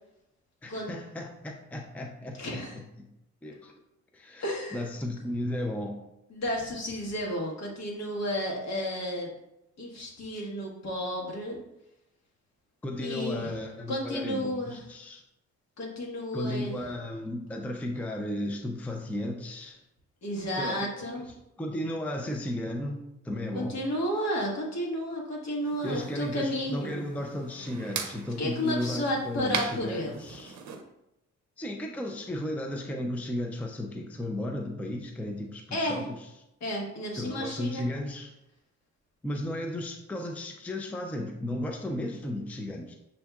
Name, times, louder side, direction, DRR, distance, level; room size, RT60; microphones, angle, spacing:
voice 1, 0.6-2.6 3.0-3.1 3.4-3.7 4.1-6.0 12.8-15.2 16.3-19.8 20.5-23.8 25.8-30.6 31.6-36.2 37.2-38.3 39.2-43.0, left 1 dB, 5° left, 2 dB, 0.4 m, -34 dB
voice 2, 2.4-2.8 4.4-4.8 6.3-9.3 9.8-11.6 13.0-13.5 13.9-14.8 15.8-16.8 20.2-21.2 23.5-27.0 28.4-30.2 35.7-36.0 36.6-37.9, equal, 60° left, -2 dB, 1.4 m, -32 dB
sound 1, 25.6-30.8, right 7 dB, 70° right, 0.6 m, -40 dB
6.8 x 2.7 x 2.3 m, 0.87 s
cardioid pair, 90°, 30 cm